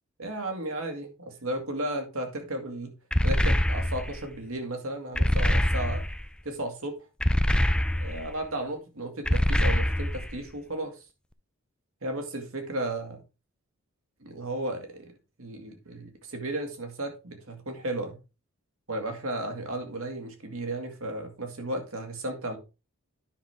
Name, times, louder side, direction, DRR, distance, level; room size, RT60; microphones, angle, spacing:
voice 1, 0.2-2.9 3.2-6.0 6.4-6.9 8.0-10.9 12.0-13.2 14.2-15.1 15.4-18.2 18.9-22.6, right 1 dB, 75° right, 2.2 m, -34 dB
sound 1, 3.1-4.2 5.2-6.2 7.2-8.3 9.3-10.3, left 1 dB, 5° left, 0.3 m, -24 dB
9.9 x 6.1 x 3.5 m
head